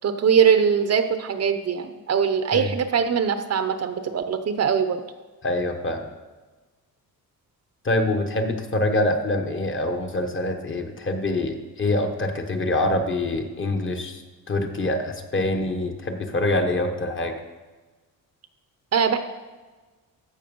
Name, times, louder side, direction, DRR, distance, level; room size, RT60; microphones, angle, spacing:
voice 1, 0.0-5.0 18.9-19.2, right 7 dB, 45° right, 9 dB, 0.7 m, -21 dB
voice 2, 5.4-6.1 7.8-14.2 14.5-17.3, left 1 dB, 30° left, 4 dB, 1.2 m, -25 dB
14.5 x 6.0 x 5.3 m, 1.3 s
cardioid pair, 145°, 37 cm